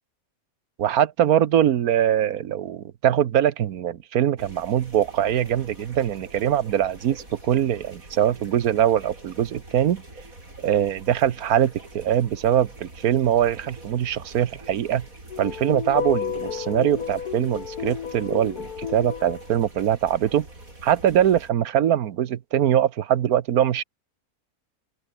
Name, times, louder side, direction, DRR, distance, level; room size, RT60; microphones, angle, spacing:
voice 1, 0.8-10.0 10.6-15.1 15.4-20.5 20.8-23.8, right 10 dB, 80° right, 1.4 m, -22 dB
sound 1, 4.4-21.5, right 2 dB, 65° right, 7.3 m, -45 dB
sound 2, 15.3-19.5, left 7 dB, 90° left, 1.9 m, -32 dB
open air
omnidirectional pair, 1.5 m